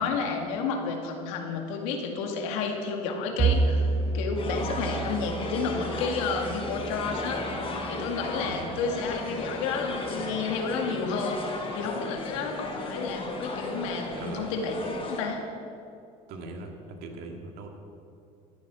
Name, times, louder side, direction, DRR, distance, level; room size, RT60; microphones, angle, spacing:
voice 1, 0.0-7.4 7.9-15.4, left 4 dB, 85° left, 2 dB, 2.0 m, -31 dB
Train, 3.3-8.6, left 1 dB, 15° left, 3.4 m, -48 dB
Bowed string instrument, 3.4-7.8, right 4 dB, 25° right, 0.7 m, -29 dB
sound 1, 4.4-15.2, left 2 dB, 35° left, 3.6 m, -35 dB
voice 2, 14.2-14.7 16.3-17.7, right 2 dB, 70° right, 3 dB, 2.1 m, -40 dB
13.0 x 10.5 x 6.2 m, 2.5 s
supercardioid pair, 90°, 17 cm